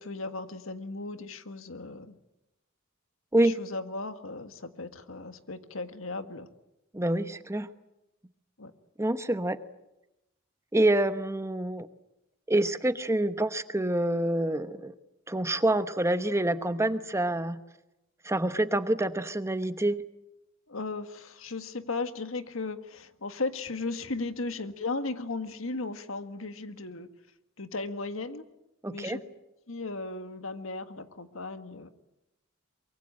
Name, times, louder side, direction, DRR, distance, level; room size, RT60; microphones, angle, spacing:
voice 1, 0.0-2.2 3.4-6.5 8.6-8.7 20.7-27.1 27.6-28.5 28.9-29.2 29.7-31.9, left 3 dB, 90° left, 9 dB, 1.7 m, -36 dB
voice 2, 6.9-7.7 9.0-9.6 10.7-11.9 12.5-14.9 15.3-17.6 18.2-20.0 28.8-29.2, right 1 dB, 15° right, 11 dB, 1.0 m, -27 dB
24.0 x 23.0 x 8.8 m, 0.91 s
head